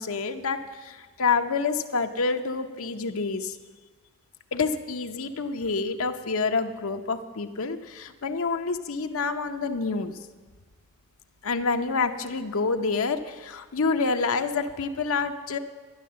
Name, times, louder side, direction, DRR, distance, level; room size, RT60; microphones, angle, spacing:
voice 1, 0.0-3.6 4.5-10.2 11.4-15.6, left 4 dB, 65° left, 6 dB, 0.8 m, -28 dB
12.0 x 9.4 x 7.4 m, 1.4 s
head